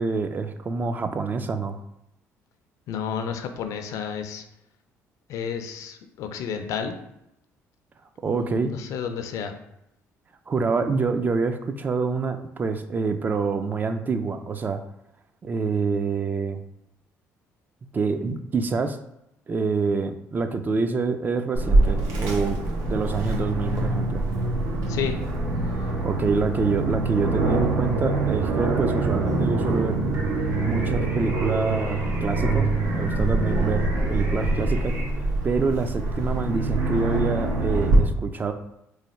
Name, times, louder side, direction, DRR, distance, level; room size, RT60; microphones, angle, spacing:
voice 1, 0.0-1.8 8.2-8.7 10.5-14.8 15.4-16.6 17.9-19.0 19.5-22.6 22.9-24.2 26.0-30.0 30.6-38.5, right 4 dB, 30° right, 8 dB, 0.3 m, -26 dB
voice 2, 2.9-4.4 5.3-7.0 8.4-9.5 24.9-25.2, left 7 dB, 70° left, 7 dB, 0.4 m, -31 dB
Aircraft, 21.5-38.0, right 2 dB, 85° right, 0.8 m, -24 dB
sound 1, 30.1-35.0, right 2 dB, 55° right, 1.0 m, -41 dB
3.2 x 2.3 x 4.2 m, 0.82 s
cardioid pair, 100°, 6 cm